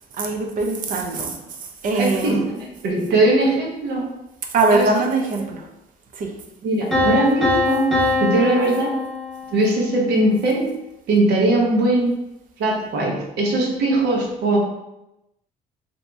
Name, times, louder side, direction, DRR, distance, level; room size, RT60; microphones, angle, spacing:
voice 1, 0.1-2.5 4.4-5.7 6.1-6.3, right 3 dB, 50° right, 3 dB, 0.6 m, -22 dB
voice 2, 1.9-4.0 4.7-4.8 5.4-5.5 6.6-7.9 8.2-9.0 9.5-10.6 11.1-12.1 12.6-14.6, right 2 dB, 75° right, -1 dB, 0.9 m, -20 dB
Piano, 6.9-9.8, left 2 dB, 5° left, 1.0 m, -22 dB
2.9 x 2.7 x 3.4 m, 0.91 s
cardioid pair, 110°, 17 cm